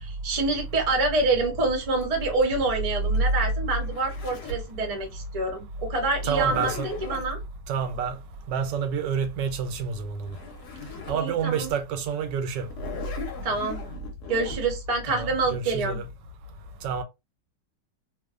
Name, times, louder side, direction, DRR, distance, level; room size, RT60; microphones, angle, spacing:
voice 1, 0.0-7.4 11.1-11.7 13.4-13.8 14.3-16.0, right 3 dB, 50° right, 0.4 m, -27 dB
Zipper (clothing), 2.0-4.7 6.1-7.3 9.9-10.0 10.2-11.2 11.7-11.8 12.6-14.6, left 4 dB, 70° left, 1.2 m, -38 dB
voice 2, 6.2-6.9 7.7-8.2 8.5-10.3 11.1-12.7 15.1-16.1 16.8-17.0, right 6 dB, 90° right, 1.3 m, -28 dB
2.9 x 2.1 x 2.3 m
omnidirectional pair, 1.9 m